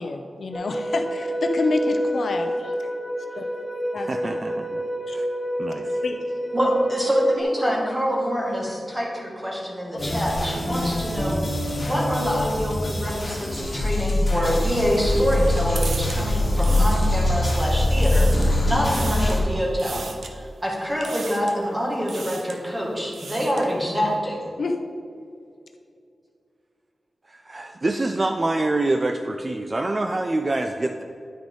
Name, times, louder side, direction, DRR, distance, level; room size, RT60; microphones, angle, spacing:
voice 1, 0.0-2.8 3.4-3.5 3.9-4.4 5.1-5.2 6.0-6.2 9.9-10.1 24.6-24.8, left 3 dB, 70° left, 5 dB, 0.6 m, -28 dB
sound 1, 0.5-7.4, equal, 15° left, 0.6 m, -28 dB
voice 2, 4.0-4.8 5.1-5.3 5.6-5.9 27.3-31.0, right 2 dB, 30° right, 5 dB, 0.3 m, -26 dB
voice 3, 6.5-11.4 11.8-24.5, equal, 15° right, -3 dB, 1.9 m, -26 dB
sound 2, 10.0-19.4, left 1 dB, 40° left, 1.6 m, -23 dB
sound 3, 14.4-17.5 17.8-18.6 18.9-19.4 19.8-20.3 21.0-21.6 22.0-22.6 23.0-23.7, right 4 dB, 90° right, 0.6 m, -37 dB
10.5 x 4.8 x 3.9 m, 2.4 s
wide cardioid pair, 110°, 0 cm